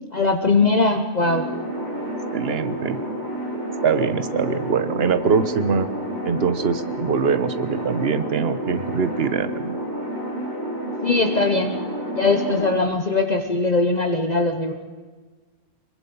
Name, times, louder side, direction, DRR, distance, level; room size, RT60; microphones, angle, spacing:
voice 1, 0.1-1.5 11.0-11.8 12.1-14.7, left 3 dB, 35° left, 5 dB, 1.2 m, -20 dB
sound 1, 1.2-12.7, right 1 dB, 35° right, 4.1 m, -30 dB
voice 2, 2.0-3.0 3.8-5.9 6.2-9.8, right 6 dB, 55° right, 12 dB, 1.3 m, -23 dB
26.0 x 23.0 x 5.5 m, 1.4 s
omnidirectional pair, 1.3 m